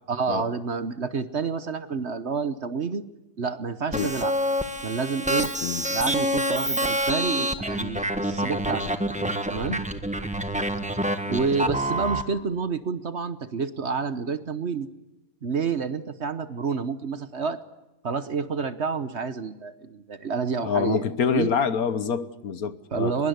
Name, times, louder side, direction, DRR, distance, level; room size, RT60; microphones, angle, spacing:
voice 1, 0.1-3.0 3.4-4.3 4.8-5.5 5.9-8.9 9.5-9.8 11.3-14.9 15.4-17.6 18.0-21.0 21.3-21.5 22.9-23.3, right 5 dB, 45° right, 12 dB, 1.2 m, -29 dB
sound 1, 3.9-12.2, equal, 5° right, 1.4 m, -27 dB
voice 2, 20.6-23.2, left 6 dB, 65° left, 14 dB, 1.5 m, -26 dB
23.5 x 22.0 x 8.1 m, 0.98 s
omnidirectional pair, 1.7 m